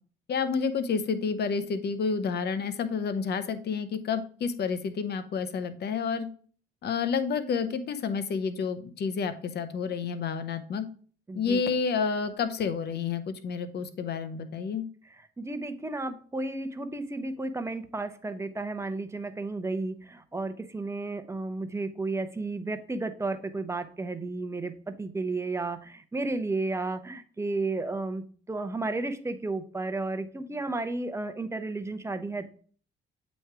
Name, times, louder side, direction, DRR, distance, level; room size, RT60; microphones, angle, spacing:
voice 1, 0.3-6.3 6.8-10.8 11.3-14.8, left 5 dB, 55° left, 10 dB, 0.8 m, -29 dB
voice 2, 11.3-11.6 15.0-32.5, right 2 dB, 15° right, 9 dB, 0.7 m, -33 dB
7.9 x 3.1 x 4.7 m, 0.43 s
cardioid pair, 90°, 20 cm